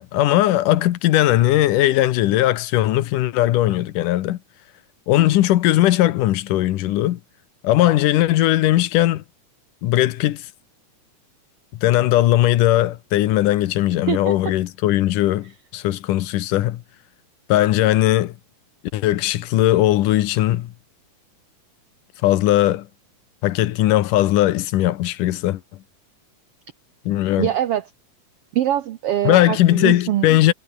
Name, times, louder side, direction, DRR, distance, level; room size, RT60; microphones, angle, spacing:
voice 1, 0.0-4.4 5.1-7.2 7.6-9.2 9.8-10.5 11.8-16.8 17.5-18.3 18.9-20.7 22.2-22.9 23.4-25.6 27.1-27.5 29.2-30.5, left 14 dB, 85° left, 2.6 m, -18 dB
voice 2, 27.4-27.8 28.5-30.3, right 12 dB, 80° right, 1.3 m, -23 dB
omnidirectional pair, 3.7 m